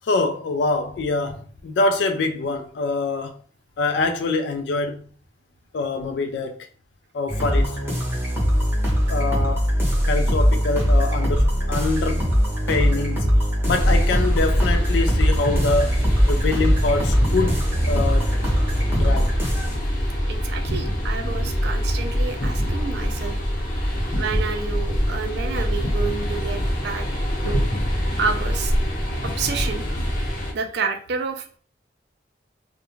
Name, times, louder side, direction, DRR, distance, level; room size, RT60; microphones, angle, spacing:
voice 1, 0.0-3.4 3.8-5.0 5.7-6.6 7.1-7.8 9.1-9.7 10.1-12.3 12.7-13.4 13.6-18.4 18.9-19.3, left 3 dB, 65° left, 0.3 m, -25 dB
sound 1, 7.3-19.7, equal, 15° right, 0.7 m, -21 dB
sound 2, 13.6-30.5, equal, 50° left, 0.9 m, -24 dB
voice 2, 20.3-23.4 24.2-27.7 28.2-28.7 29.2-29.8 30.5-31.6, right 5 dB, 60° right, 0.4 m, -29 dB
2.3 x 2.1 x 3.0 m
head